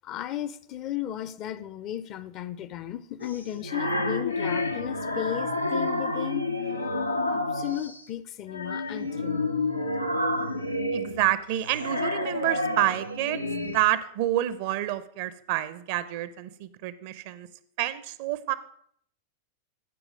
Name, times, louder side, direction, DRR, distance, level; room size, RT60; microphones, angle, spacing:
voice 1, 0.0-6.5 7.2-9.6, left 11 dB, 40° left, 0.5 m, -35 dB
sound 1, 3.2-8.0 8.5-13.8, left 2 dB, 85° left, 0.6 m, -29 dB
voice 2, 10.9-17.5 17.8-18.5, right 13 dB, 50° right, 0.6 m, -28 dB
14.5 x 4.9 x 5.0 m
figure-of-eight pair, 90°, 0 cm